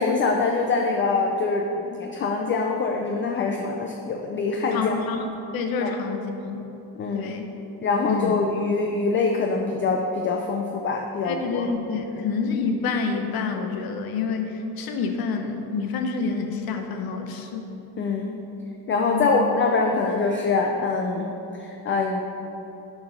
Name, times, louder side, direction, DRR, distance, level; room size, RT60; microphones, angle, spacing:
voice 1, 0.0-5.0 5.8-5.9 7.0-7.3 7.8-11.6 12.2-12.3 18.0-18.4 18.9-21.3 21.6-22.2, left 4 dB, 30° left, 2 dB, 0.4 m, -24 dB
voice 2, 4.7-5.3 5.5-6.6 7.1-7.5 8.1-8.3 11.2-17.7 19.1-19.4, left 5 dB, 55° left, 5 dB, 0.8 m, -28 dB
7.4 x 4.9 x 5.4 m, 2.9 s
cardioid pair, 170°, 42 cm